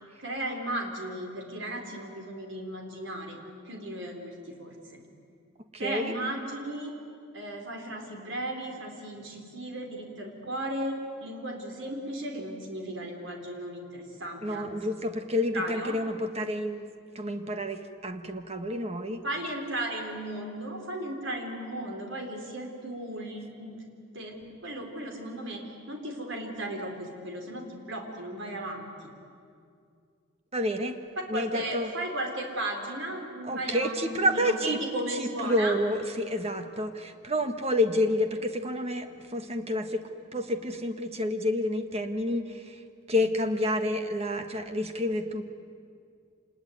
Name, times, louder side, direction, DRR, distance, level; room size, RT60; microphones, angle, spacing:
voice 1, 0.2-3.4 3.7-5.0 5.8-6.9 7.3-14.7 15.5-16.0 19.2-23.8 24.1-24.3 24.6-28.9 31.3-35.8, right 1 dB, 65° right, 2 dB, 4.1 m, -35 dB
voice 2, 5.8-6.1 14.4-19.2 30.5-30.9 31.3-31.9 33.4-34.8 35.1-40.0 40.3-42.8 43.1-45.4, left 1 dB, 30° right, 7 dB, 1.5 m, -29 dB
26.5 x 20.5 x 9.5 m, 2.3 s
head